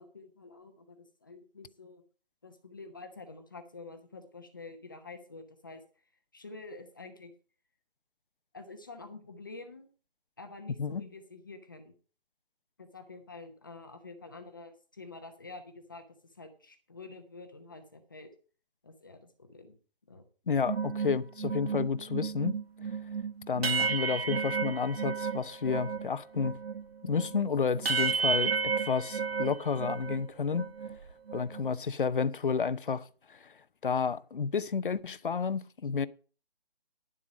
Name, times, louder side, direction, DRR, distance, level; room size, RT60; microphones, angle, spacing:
voice 1, 0.0-2.0 2.4-5.8 6.3-7.3 8.5-9.9 10.4-11.9 12.8-18.3 18.8-19.7 20.1-20.2, left 3 dB, 20° left, 0.9 m, -48 dB
voice 2, 20.5-22.6 23.5-26.6 27.0-30.7 31.3-33.4 33.8-36.1, left 5 dB, 60° left, 0.8 m, -31 dB
sound 1, 20.6-26.1 26.3-30.2 30.5-31.7, right 5 dB, 90° right, 1.4 m, -32 dB
11.5 x 7.5 x 5.1 m
hypercardioid pair, 175°, 29 cm